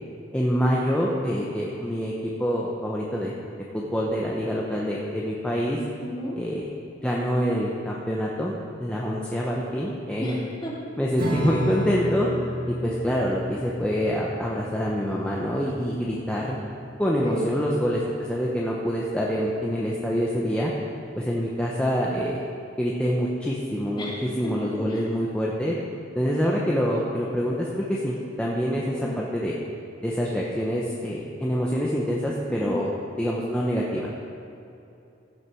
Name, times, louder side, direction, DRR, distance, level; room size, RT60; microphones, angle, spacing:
voice 1, 0.3-3.3 3.7-5.8 6.4-6.7 7.0-8.5 8.8-10.4 11.0-12.3 12.7-16.6 17.0-20.7 21.2-22.4 22.8-25.7 26.1-29.6 30.0-34.1, equal, 5° left, -4 dB, 0.8 m, -26 dB
voice 2, 6.0-6.4 10.2-10.7 17.2-17.5 24.0-24.5 24.9-25.1 28.8-29.2 32.5-32.8, left 1 dB, 25° left, -4 dB, 2.2 m, -33 dB
Strum, 11.2-18.0, equal, 50° right, 1.9 m, -33 dB
15.5 x 6.5 x 4.6 m, 2.8 s
head